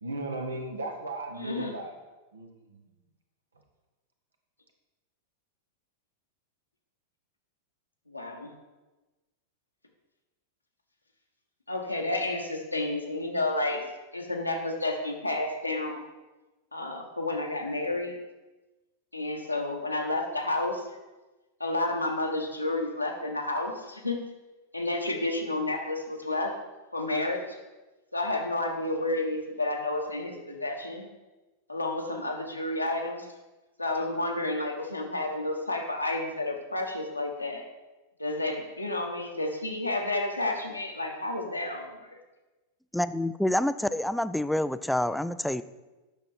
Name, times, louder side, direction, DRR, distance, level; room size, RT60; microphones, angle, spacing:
voice 1, 0.0-1.9 2.3-2.8, right 2 dB, 75° right, 4 dB, 1.2 m, -36 dB
voice 2, 1.4-1.7 8.1-8.5 11.7-13.8 14.1-16.0 16.7-18.2 19.1-20.9 21.6-24.2 24.7-26.5 26.9-27.4 28.1-31.1 31.7-33.3 33.8-37.6 38.2-42.1, left 2 dB, 85° left, 1 dB, 1.2 m, -30 dB
voice 3, 42.9-45.6, left 1 dB, ahead, 13 dB, 0.3 m, -27 dB
8.6 x 6.2 x 4.4 m, 1.1 s
figure-of-eight pair, 90°, 0 cm